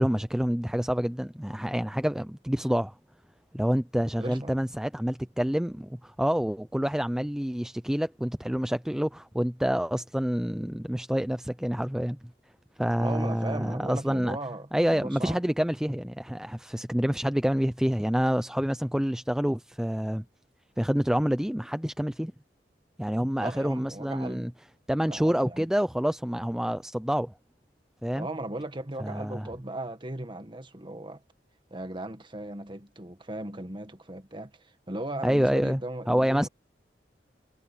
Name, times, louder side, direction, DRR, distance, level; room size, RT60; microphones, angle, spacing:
voice 1, 0.0-2.9 3.5-12.2 12.8-14.4 14.7-20.2 20.8-22.3 23.0-24.5 24.9-27.3 28.0-28.3 29.0-29.5 35.2-35.8 36.1-36.5, equal, 5° right, 0.5 m, -27 dB
voice 2, 4.2-4.6 13.0-15.4 16.9-17.1 23.4-24.5 25.0-25.6 28.1-31.2 31.7-36.5, right 1 dB, 30° right, 1.8 m, -37 dB
head